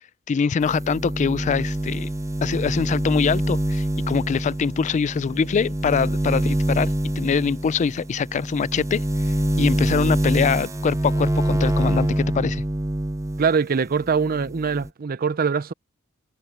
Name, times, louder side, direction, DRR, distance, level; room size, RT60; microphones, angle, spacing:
voice 1, 0.3-2.1 2.4-9.0 9.6-12.6, left 6 dB, 35° left, 0.3 m, -23 dB
sound 1, 0.6-13.6 13.9-14.9, right 1 dB, 15° right, 0.8 m, -25 dB
voice 2, 13.4-15.7, right 5 dB, 45° right, 0.5 m, -23 dB
head